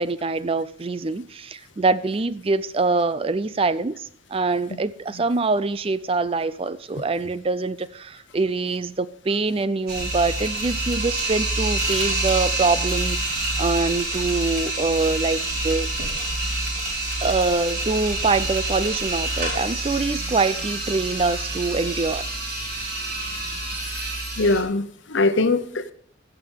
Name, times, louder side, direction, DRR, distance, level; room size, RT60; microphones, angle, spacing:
voice 1, 0.0-15.9 17.2-22.3, right 3 dB, 30° right, 0.4 m, -24 dB
sound 1, 9.9-24.6, right 2 dB, 50° right, 4.9 m, -27 dB
voice 2, 24.4-25.9, left 2 dB, 70° left, 1.0 m, -21 dB
15.5 x 6.8 x 5.6 m
head